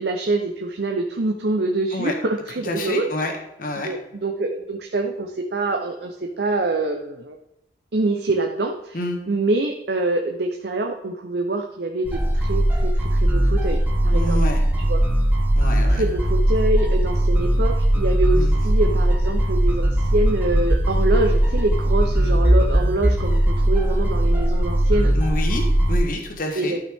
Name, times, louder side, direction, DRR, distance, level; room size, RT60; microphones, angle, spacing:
voice 1, 0.0-3.1 3.8-7.4 7.9-9.0 9.3-14.4 14.8-15.0 15.9-25.2 26.5-26.8, right 2 dB, 65° right, 3 dB, 0.7 m, -25 dB
voice 2, 2.7-3.3 3.6-3.9 8.9-9.2 14.1-14.6 15.5-16.0 18.3-18.6 25.1-26.8, left 1 dB, 50° left, 3 dB, 1.4 m, -27 dB
sound 1, 12.1-26.0, right 1 dB, 10° right, 1.1 m, -19 dB
12.0 x 5.6 x 3.6 m, 0.86 s
head